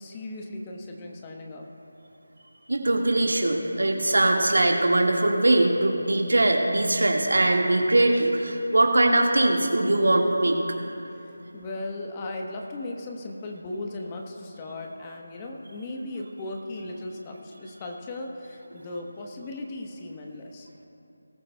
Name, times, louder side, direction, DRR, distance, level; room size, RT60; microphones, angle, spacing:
voice 1, 0.0-1.7 11.1-20.7, left 2 dB, 20° left, 1 dB, 1.0 m, -37 dB
voice 2, 2.7-10.6, right 1 dB, 75° right, 1 dB, 1.7 m, -21 dB
19.5 x 13.5 x 2.3 m, 2.8 s
figure-of-eight pair, 165°, 0 cm